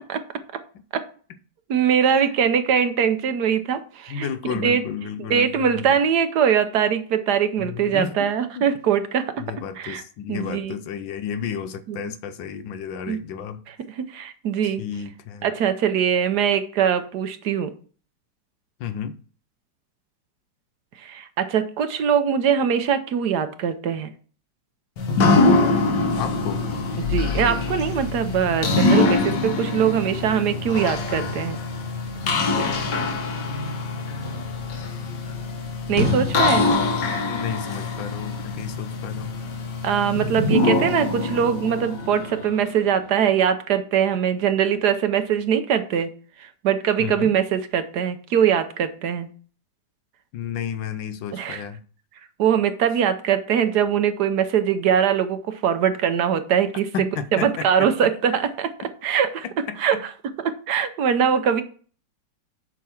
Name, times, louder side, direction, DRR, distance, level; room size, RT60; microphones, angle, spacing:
voice 1, 1.7-4.8 5.3-9.4 9.8-10.0 10.3-10.7 11.9-12.0 13.1-13.2 13.7-14.8 15.4-17.7 21.0-24.1 27.1-31.6 35.9-36.7 39.8-46.1 46.4-49.3 51.3-51.6 52.4-56.9 57.3-58.7 59.0-59.5 59.8-60.0 60.4-61.6, right 8 dB, 65° right, 1.2 m, -22 dB
voice 2, 4.1-5.5 5.8-5.9 7.6-8.7 9.4-13.6 14.6-15.5 18.8-19.2 26.2-26.6 37.2-39.4 47.0-47.3 50.3-51.8 56.9-57.9 59.4-60.0, left 8 dB, 85° left, 1.5 m, -32 dB
sound 1, 25.0-42.8, left 3 dB, 70° left, 1.8 m, -24 dB
7.1 x 6.1 x 4.4 m
omnidirectional pair, 2.0 m